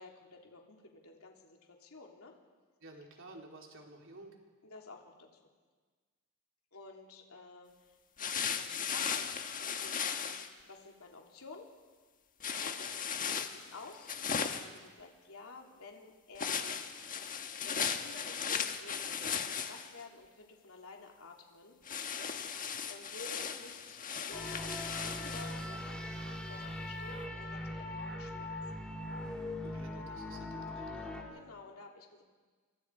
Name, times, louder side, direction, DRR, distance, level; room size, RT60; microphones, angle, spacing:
voice 1, 0.0-2.3 4.6-5.4 6.7-11.7 13.2-16.7 17.6-21.8 22.9-26.2 26.5-28.8 31.3-32.2, left 3 dB, 70° left, 0 dB, 3.5 m, -52 dB
voice 2, 2.8-4.4 29.6-31.4, right 2 dB, 60° right, 1 dB, 3.7 m, -52 dB
sound 1, 8.2-10.5 12.4-14.8 16.4-20.0 21.9-25.7, left 7 dB, 40° left, 1.4 m, -37 dB
sound 2, 24.3-31.2, left 1 dB, 5° left, 3.4 m, -41 dB
29.0 x 25.5 x 4.9 m, 1.4 s
head